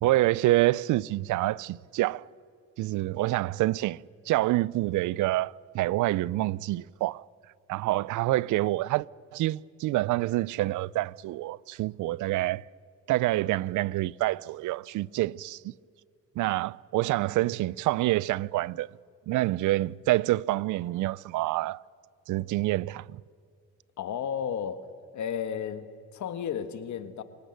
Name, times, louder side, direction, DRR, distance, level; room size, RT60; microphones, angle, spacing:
voice 1, 0.0-2.3 2.8-7.3 7.7-9.1 9.3-12.6 13.1-15.7 16.4-18.9 19.3-21.8 22.3-23.2, right 17 dB, 80° right, 0.5 m, -27 dB
voice 2, 24.0-24.9 25.1-27.2, left 8 dB, 70° left, 1.5 m, -33 dB
27.5 x 18.0 x 6.7 m
cardioid pair, 90°, 30 cm